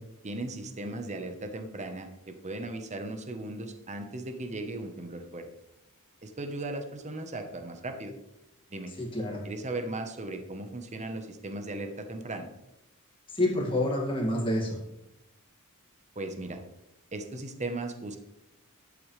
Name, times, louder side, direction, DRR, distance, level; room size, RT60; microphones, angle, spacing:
voice 1, 0.2-5.5 6.2-8.1 8.7-8.9 9.4-12.5 16.1-16.6 17.1-18.2, right 2 dB, 30° right, 6 dB, 1.0 m, -37 dB
voice 2, 9.0-9.5 13.3-14.8, left 1 dB, 25° left, -2 dB, 2.1 m, -28 dB
11.0 x 8.4 x 3.3 m, 0.87 s
head